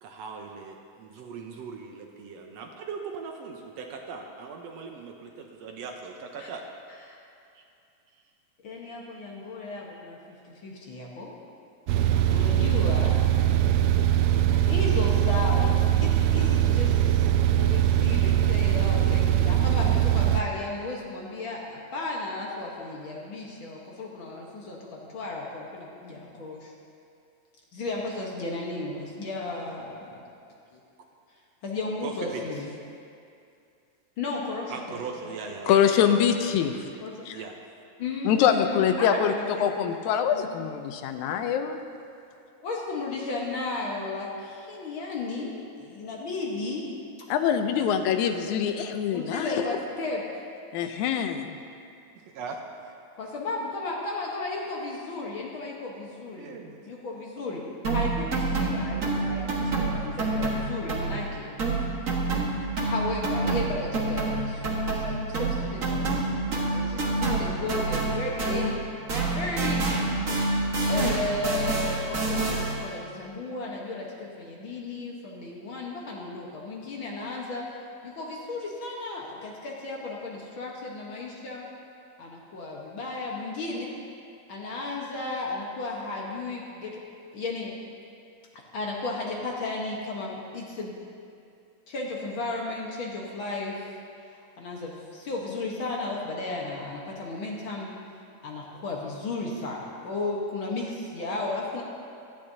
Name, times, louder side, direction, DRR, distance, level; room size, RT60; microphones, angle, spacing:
voice 1, 0.0-6.6 7.5-7.6 32.0-32.5 34.7-36.2 37.3-37.6 52.1-52.9 56.4-56.8, right 5 dB, 70° right, 2 dB, 1.8 m, -39 dB
voice 2, 8.6-11.3 12.3-13.2 14.4-17.3 17.5-26.7 27.7-30.2 30.7-30.8 31.6-32.7 34.2-35.4 37.0-37.1 38.0-39.7 40.3-40.7 42.6-46.9 49.1-50.5 53.2-57.6 57.9-61.5 62.8-68.8 69.2-69.9 70.9-77.8 78.0-81.7 82.2-84.0 84.5-87.0 87.3-87.8 88.5-91.0 91.9-93.8 94.6-98.0 98.4-101.8, left 3 dB, 55° left, -2 dB, 1.6 m, -34 dB
sound 1, 11.9-20.4, right 11 dB, 90° right, 1.4 m, -22 dB
voice 3, 35.7-36.9 37.3-37.4 38.3-41.8 47.3-49.7 50.7-51.6, left 8 dB, 85° left, 7 dB, 2.1 m, -24 dB
sound 2, 57.8-61.3 61.6-68.8 69.1-72.9, right 2 dB, 40° right, 1.3 m, -27 dB
17.5 x 12.5 x 2.7 m, 2.5 s
omnidirectional pair, 3.4 m